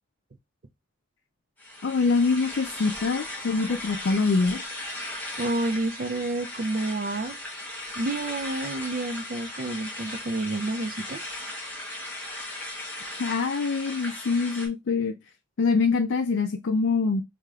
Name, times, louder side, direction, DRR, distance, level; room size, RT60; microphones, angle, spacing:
sound 1, 1.6-14.7, left 1 dB, 10° left, 1.0 m, -37 dB
voice 1, 1.8-4.6 13.2-15.1 15.6-17.2, left 4 dB, 65° left, 0.4 m, -24 dB
voice 2, 5.4-7.4 8.0-11.2, right 2 dB, 45° right, 0.4 m, -29 dB
4.7 x 2.8 x 2.3 m
head